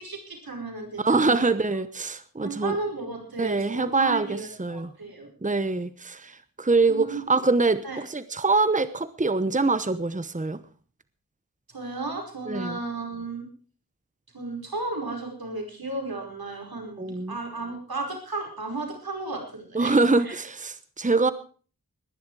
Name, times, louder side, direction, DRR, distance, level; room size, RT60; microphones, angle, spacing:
voice 1, 0.0-1.5 2.4-5.3 6.9-7.2 7.8-8.0 11.7-13.5 14.3-20.4, right 3 dB, 90° right, 2 dB, 5.0 m, -34 dB
voice 2, 1.0-2.8 3.4-4.9 5.4-7.8 8.1-10.6 12.5-12.8 17.0-17.4 19.7-21.3, right 3 dB, 20° right, 14 dB, 1.0 m, -24 dB
20.0 x 11.0 x 4.8 m, 0.41 s
wide cardioid pair, 50°, 35 cm